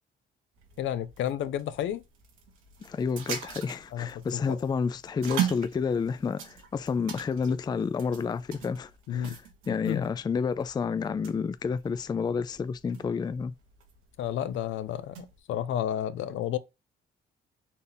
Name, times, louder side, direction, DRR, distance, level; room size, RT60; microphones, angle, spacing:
sound 1, 0.5-15.4, right 9 dB, 85° right, 1.2 m, -40 dB
voice 1, 0.8-2.0 3.9-4.6 9.1-9.4 9.7-10.1 14.2-16.6, left 10 dB, 75° left, 0.5 m, -31 dB
voice 2, 2.8-9.4 9.7-13.5, left 5 dB, 20° left, 0.3 m, -30 dB
4.3 x 2.7 x 3.4 m
cardioid pair, 90°, 20 cm